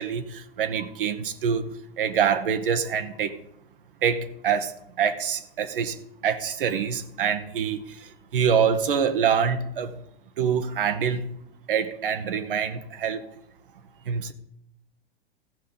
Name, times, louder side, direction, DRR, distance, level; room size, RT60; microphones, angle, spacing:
voice 1, 0.0-1.7 2.0-3.4 4.0-6.0 6.2-9.9 10.4-11.3 11.7-13.2 14.1-14.3, right 7 dB, 60° right, 9 dB, 1.1 m, -25 dB
14.5 x 6.4 x 5.5 m, 0.78 s
figure-of-eight pair, 90°, 31 cm